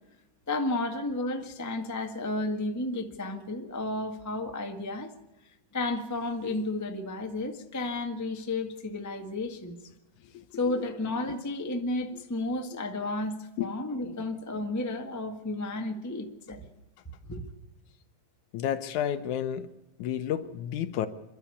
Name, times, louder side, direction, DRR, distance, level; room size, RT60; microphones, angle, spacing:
voice 1, 0.5-5.1 5.7-9.8 10.5-16.6 17.2-17.5, left 2 dB, 15° left, 0.6 m, -32 dB
voice 2, 18.5-19.7 20.0-21.1, left 10 dB, 70° left, 2.1 m, -31 dB
27.5 x 12.0 x 8.4 m
omnidirectional pair, 3.8 m